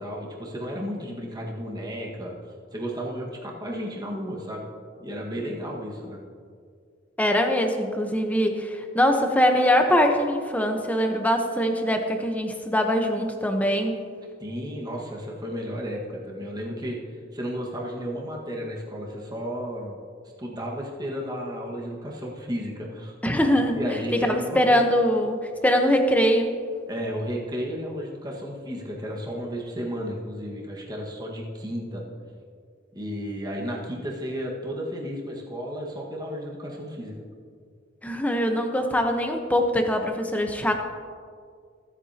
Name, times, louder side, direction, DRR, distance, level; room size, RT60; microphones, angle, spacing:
voice 1, 0.0-2.3 2.7-4.7 5.0-6.2 14.4-20.0 20.4-23.2 23.7-24.8 26.9-32.0 32.9-37.2, equal, 20° right, -2 dB, 1.7 m, -33 dB
voice 2, 7.2-14.0 23.2-23.8 24.2-25.4 25.6-26.5 38.0-40.7, equal, 10° left, 4 dB, 1.0 m, -22 dB
24.0 x 8.1 x 2.9 m, 2.1 s
head